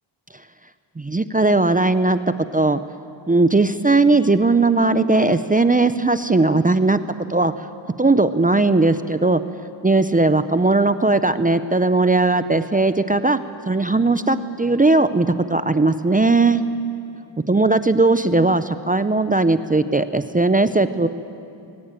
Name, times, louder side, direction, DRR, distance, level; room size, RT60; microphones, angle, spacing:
voice 1, 1.0-2.2 2.5-2.8 3.3-7.0 7.3-7.7 8.0-9.4 9.8-13.4 13.7-16.6 17.5-21.1, right 3 dB, 15° right, 11 dB, 0.6 m, -18 dB
20.0 x 18.0 x 8.9 m, 2.5 s
wide cardioid pair, 100°, 49 cm